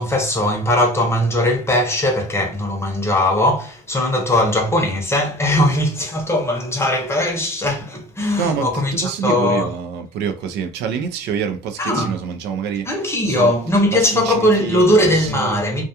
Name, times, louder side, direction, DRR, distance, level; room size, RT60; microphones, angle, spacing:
voice 1, 0.0-9.7 11.8-12.1 12.9-15.8, left 1 dB, 15° left, 0.7 m, -19 dB
voice 2, 8.3-12.9 13.3-13.5 13.9-15.6, right 7 dB, 80° right, 0.5 m, -26 dB
2.3 x 2.2 x 2.7 m
cardioid pair, 110°, 17 cm